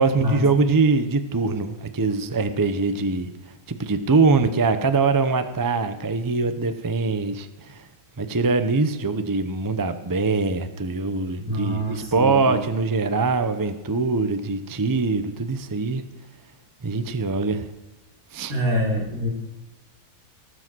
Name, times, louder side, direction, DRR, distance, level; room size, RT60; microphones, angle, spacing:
voice 1, 0.0-3.3 3.7-7.9 8.2-16.0 16.8-17.7 18.3-18.5, right 4 dB, 25° right, 9 dB, 0.5 m, -23 dB
voice 2, 11.5-12.6 18.5-19.3, equal, 70° right, 0 dB, 3.0 m, -25 dB
19.0 x 7.5 x 6.2 m, 1.1 s
omnidirectional pair, 1.6 m